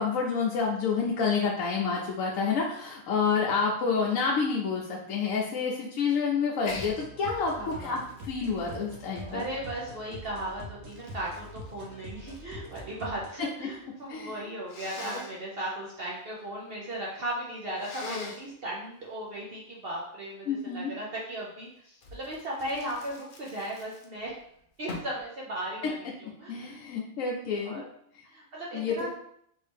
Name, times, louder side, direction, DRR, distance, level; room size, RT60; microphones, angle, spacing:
voice 1, 0.0-7.5 7.8-9.4 14.1-14.4 20.5-20.9 26.5-27.8 28.7-29.1, left 5 dB, 75° left, -3 dB, 1.0 m, -28 dB
Sneeze, 6.6-6.9 7.4-9.8 10.5-12.9 13.2-13.8 14.7-15.3 17.8-18.5 22.0-24.3 24.9-25.2, left 3 dB, 55° left, 0.6 m, -42 dB
sound 1, 6.6-13.3, equal, 80° right, 1.2 m, -44 dB
voice 2, 7.5-8.0 9.2-24.3 24.8-26.7 27.6-27.8 28.2-29.1, right 1 dB, 55° right, -4 dB, 0.8 m, -37 dB
3.2 x 2.7 x 3.3 m, 0.69 s
omnidirectional pair, 1.5 m